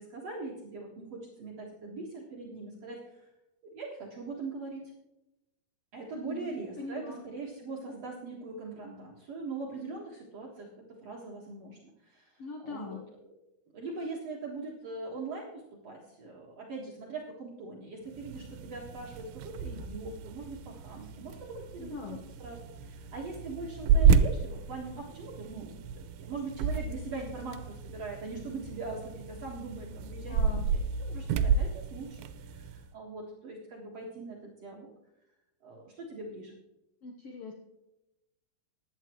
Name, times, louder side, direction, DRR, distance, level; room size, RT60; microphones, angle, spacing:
voice 1, 0.0-3.3 3.7-4.8 5.9-10.7 11.0-13.4 13.7-34.9 35.6-36.5, right 3 dB, 50° right, -2 dB, 2.3 m, -41 dB
voice 2, 6.1-6.5 6.8-7.2 12.4-13.0 21.8-22.2 30.3-30.7 37.0-37.5, left 4 dB, 65° left, 2 dB, 1.6 m, -41 dB
sound 1, 18.1-32.9, right 6 dB, 85° right, 2.5 m, -31 dB
15.5 x 11.0 x 3.1 m, 0.93 s
omnidirectional pair, 4.4 m